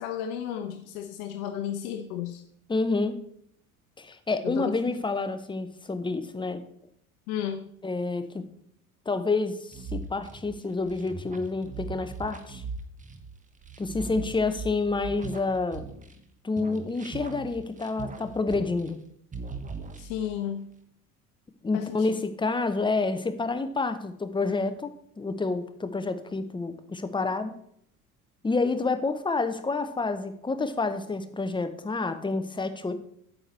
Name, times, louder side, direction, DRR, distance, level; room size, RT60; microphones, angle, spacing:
voice 1, 0.0-2.4 4.4-4.7 7.3-7.7 20.0-20.7 21.7-22.1, left 9 dB, 55° left, 6 dB, 0.9 m, -33 dB
voice 2, 2.7-3.2 4.0-6.6 7.8-8.4 9.1-12.6 13.8-15.9 16.4-19.0 21.6-27.5 28.4-32.9, left 3 dB, 10° left, 9 dB, 0.8 m, -28 dB
sound 1, 9.7-16.3 16.6-19.1 19.3-20.4, right 4 dB, 15° right, 1.1 m, -40 dB
8.8 x 7.9 x 4.2 m, 0.69 s
figure-of-eight pair, 65°, 44 cm